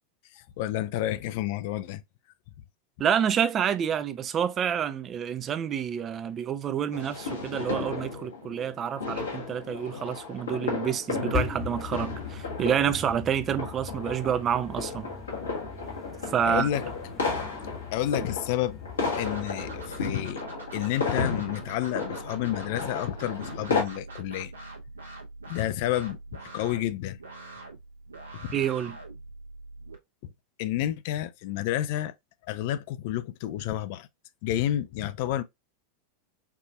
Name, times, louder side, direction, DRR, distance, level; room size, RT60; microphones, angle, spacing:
voice 1, 0.3-2.0 16.4-16.8 17.9-18.8 19.2-20.4 20.7-24.5 25.5-26.2 26.5-27.2 28.3-28.6 30.6-32.1 32.5-34.1 34.4-35.4, left 13 dB, 50° left, 0.4 m, -30 dB
voice 2, 3.0-15.1 16.3-16.7 28.5-29.0, right 8 dB, 25° right, 0.4 m, -28 dB
sound 1, 6.9-23.8, left 4 dB, 70° left, 1.3 m, -34 dB
sound 2, 11.3-20.1, left 7 dB, 20° left, 0.9 m, -39 dB
sound 3, 19.1-29.9, right 2 dB, 75° right, 1.0 m, -43 dB
4.7 x 2.6 x 2.4 m
figure-of-eight pair, 90°, 0 cm